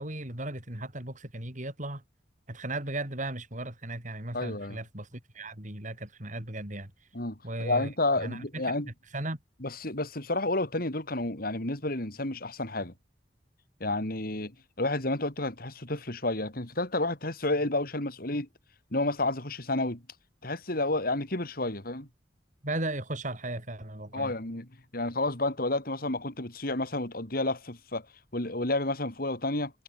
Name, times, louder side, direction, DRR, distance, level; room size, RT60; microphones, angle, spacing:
voice 1, 0.0-2.0 2.5-6.9 7.4-7.9 8.2-8.7 9.1-9.4 22.6-24.3, right 2 dB, 45° right, 5.6 m, -36 dB
voice 2, 4.3-4.8 7.1-8.9 9.6-12.9 13.8-14.5 14.8-18.5 18.9-20.0 20.4-22.1 24.1-28.1 28.3-29.7, left 2 dB, 55° left, 4.0 m, -30 dB
head